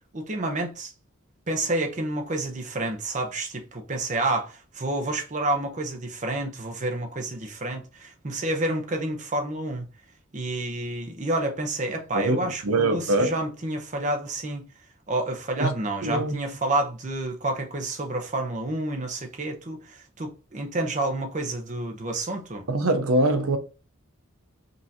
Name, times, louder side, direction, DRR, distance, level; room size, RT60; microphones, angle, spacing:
voice 1, 0.1-0.9 1.5-9.9 10.3-14.6 15.1-22.6, right 2 dB, 35° right, 0.8 m, -29 dB
voice 2, 12.1-13.3 15.6-15.7 16.0-16.4 22.7-23.6, right 2 dB, 85° right, 0.8 m, -23 dB
5.4 x 2.7 x 2.8 m
head